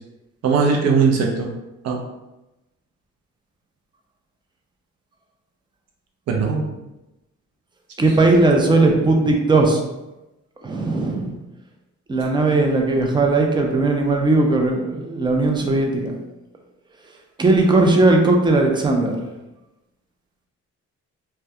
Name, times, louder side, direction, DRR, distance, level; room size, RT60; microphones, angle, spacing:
voice 1, 0.4-1.5 1.8-2.0 6.3-6.7, right 5 dB, 55° right, 0 dB, 0.6 m, -19 dB
voice 2, 8.0-9.8 10.6-11.4 12.1-16.1 17.4-19.1, right 2 dB, 15° right, 2 dB, 0.4 m, -18 dB
2.3 x 2.1 x 2.7 m, 0.99 s
cardioid pair, 90°, 30 cm